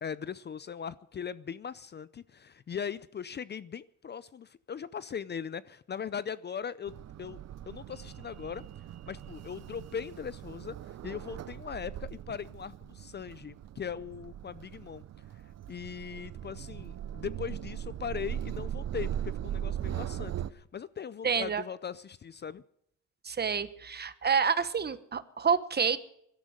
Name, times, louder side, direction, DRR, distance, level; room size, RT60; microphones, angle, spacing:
voice 1, 0.0-7.4 7.7-8.6 9.1-15.0 15.7-22.6, left 7 dB, 35° left, 0.5 m, -39 dB
sound 1, 6.9-20.5, right 10 dB, 55° right, 0.7 m, -39 dB
voice 2, 21.2-21.6 23.2-26.0, right 6 dB, 35° right, 1.1 m, -28 dB
17.5 x 12.5 x 6.4 m
cardioid pair, 90°, 30 cm